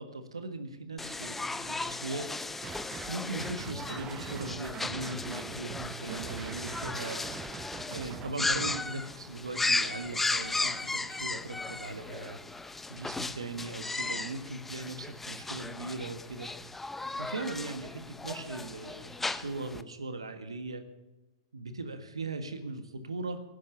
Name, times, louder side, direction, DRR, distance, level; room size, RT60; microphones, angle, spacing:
voice 1, 0.0-2.3 2.6-7.3 7.5-12.4 12.9-16.5 17.1-20.8 21.5-23.4, right 2 dB, 85° right, 8 dB, 1.5 m, -39 dB
sound 1, 1.0-19.8, left 3 dB, 10° left, 0.6 m, -36 dB
sound 2, 2.6-3.1 3.4-8.8, right 7 dB, 25° right, 1.1 m, -43 dB
18.0 x 10.5 x 7.1 m, 1.1 s
hypercardioid pair, 110°, 3 cm